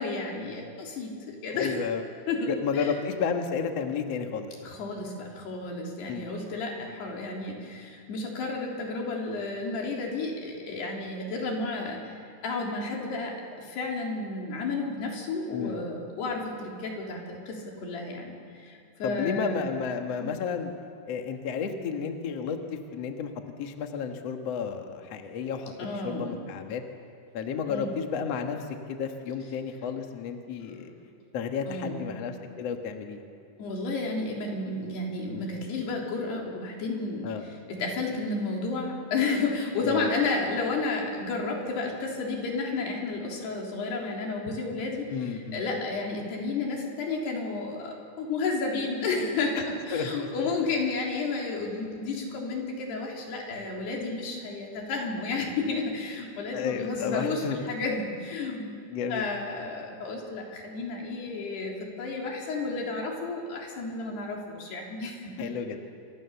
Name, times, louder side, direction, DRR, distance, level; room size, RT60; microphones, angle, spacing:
voice 1, 0.0-1.8 2.3-3.0 4.6-19.7 20.2-20.3 25.8-26.4 27.7-27.9 31.7-32.1 33.6-37.3 37.7-58.7 59.1-65.5, left 3 dB, 85° left, -1 dB, 5.6 m, -32 dB
voice 2, 1.5-2.0 2.5-4.5 6.1-6.3 15.5-15.8 19.0-20.7 21.1-23.3 23.6-26.8 27.3-28.6 28.9-30.9 31.3-33.2 37.2-37.4 39.8-40.1 45.1-45.8 49.5-49.6 49.9-50.5 56.5-57.6 58.9-59.3 65.4-65.8, left 6 dB, 50° left, 4 dB, 2.1 m, -32 dB
28.0 x 24.5 x 7.1 m, 2.4 s
omnidirectional pair, 4.6 m